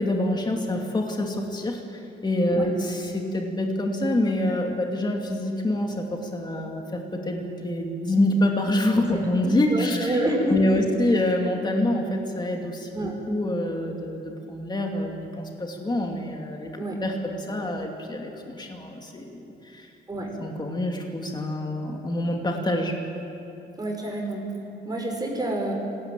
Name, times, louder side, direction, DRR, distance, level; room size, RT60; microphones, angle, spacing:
voice 1, 0.0-10.2 10.5-16.7 17.0-19.9 20.4-23.0, left 1 dB, 20° left, 1 dB, 2.5 m, -26 dB
voice 2, 9.1-10.6 12.9-13.2 16.8-17.0 20.1-20.3 23.8-25.7, right 1 dB, 20° right, 0 dB, 5.4 m, -28 dB
20.5 x 17.5 x 9.0 m, 2.9 s
cardioid pair, 90°, 20 cm